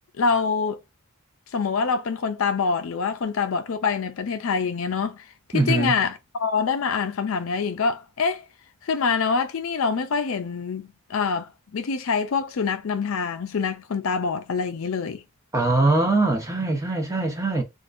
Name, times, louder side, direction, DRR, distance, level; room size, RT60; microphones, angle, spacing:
voice 1, 0.2-0.8 1.5-5.2 5.5-8.4 8.8-15.2, left 5 dB, 65° left, 0.4 m, -25 dB
voice 2, 5.5-6.0 15.5-17.6, right 2 dB, 15° right, 0.8 m, -22 dB
3.5 x 2.5 x 2.5 m
head